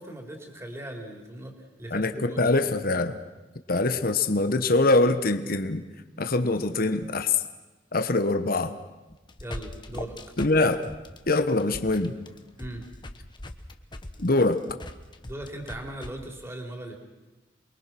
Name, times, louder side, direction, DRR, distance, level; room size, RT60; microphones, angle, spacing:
voice 1, 0.0-2.7 9.4-10.2 12.6-12.8 15.2-17.0, right 1 dB, 15° right, 3 dB, 3.6 m, -39 dB
voice 2, 1.9-3.2 3.7-5.8 6.2-7.3 7.9-8.7 10.4-10.8 11.3-12.1 14.2-14.6, left 2 dB, 55° left, 8 dB, 1.2 m, -23 dB
sound 1, 9.1-16.1, left 1 dB, 25° left, 1.3 m, -40 dB
28.5 x 22.5 x 6.1 m, 1.1 s
head